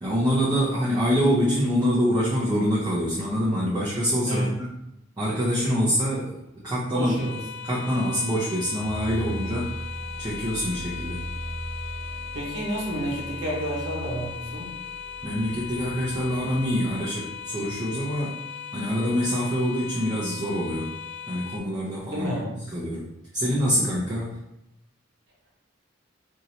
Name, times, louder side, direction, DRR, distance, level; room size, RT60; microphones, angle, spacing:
voice 1, 0.0-4.7 5.2-6.4 6.6-7.2 7.6-9.7 10.2-11.2 15.2-18.4 18.7-20.9 21.3-23.1 23.3-24.3, equal, 20° right, -8 dB, 0.6 m, -25 dB
voice 2, 4.3-4.6 6.9-7.4 12.3-14.7 22.1-22.5, equal, 70° right, -3 dB, 1.0 m, -30 dB
sound 1, 7.2-21.6, left 8 dB, 65° left, 0.3 m, -38 dB
sound 2, 8.8-17.9, right 1 dB, 5° left, 1.0 m, -39 dB
3.0 x 2.7 x 2.7 m, 0.86 s
head